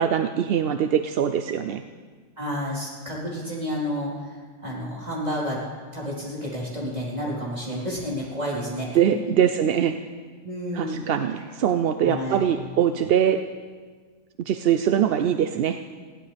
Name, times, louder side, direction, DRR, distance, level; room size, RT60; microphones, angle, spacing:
voice 1, 0.0-1.8 8.9-10.0 10.7-13.4 14.4-15.8, right 9 dB, 60° right, 8 dB, 0.7 m, -22 dB
voice 2, 2.4-5.6 5.9-9.2 10.4-11.0 12.0-12.5, equal, 30° right, -6 dB, 4.2 m, -30 dB
20.0 x 16.0 x 3.4 m, 1.5 s
omnidirectional pair, 1.4 m